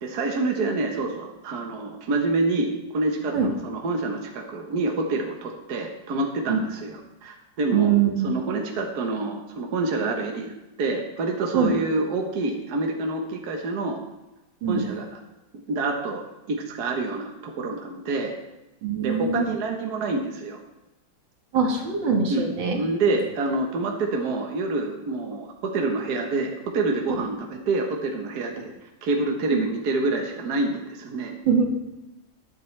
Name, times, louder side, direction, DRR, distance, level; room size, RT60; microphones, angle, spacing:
voice 1, 0.0-7.9 8.2-10.5 10.8-14.0 14.7-15.1 15.5-16.2 16.5-18.3 19.0-20.6 22.3-28.7 29.0-31.3, right 3 dB, 60° right, 2 dB, 1.6 m, -27 dB
voice 2, 7.7-8.3 11.5-11.7 14.6-14.9 18.8-19.5 21.5-22.8 27.1-27.2 29.5-29.6 31.5-31.6, right 6 dB, 80° right, 1 dB, 2.3 m, -22 dB
20.0 x 7.3 x 3.3 m, 0.97 s
omnidirectional pair, 2.0 m